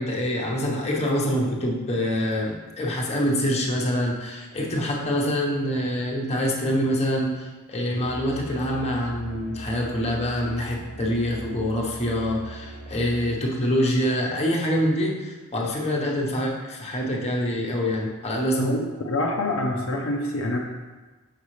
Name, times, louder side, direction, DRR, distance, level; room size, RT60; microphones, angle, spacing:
voice 1, 0.0-18.8, equal, 30° left, -3 dB, 1.0 m, -25 dB
Musical instrument, 7.9-13.4, right 2 dB, 70° right, 1.1 m, -40 dB
voice 2, 19.0-20.6, left 1 dB, 65° left, 0 dB, 0.6 m, -26 dB
6.7 x 5.5 x 3.2 m, 1.2 s
head